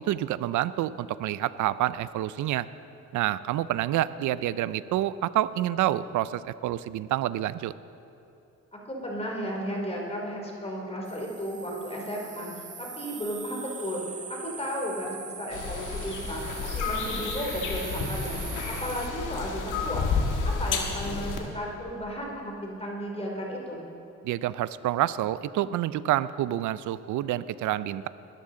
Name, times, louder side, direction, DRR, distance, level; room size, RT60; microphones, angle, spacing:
voice 1, 0.1-2.7 3.1-7.7 24.2-28.1, right 13 dB, 75° right, 16 dB, 0.5 m, -28 dB
voice 2, 8.8-12.5 12.8-18.4 18.7-20.1 20.4-23.8, equal, 20° left, -1 dB, 2.9 m, -34 dB
sound 1, 11.0-19.1, right 5 dB, 25° right, 0.6 m, -41 dB
sound 2, 15.5-21.4, left 4 dB, 85° left, 1.8 m, -31 dB
20.5 x 13.0 x 3.9 m, 2.7 s
cardioid pair, 90°, 30 cm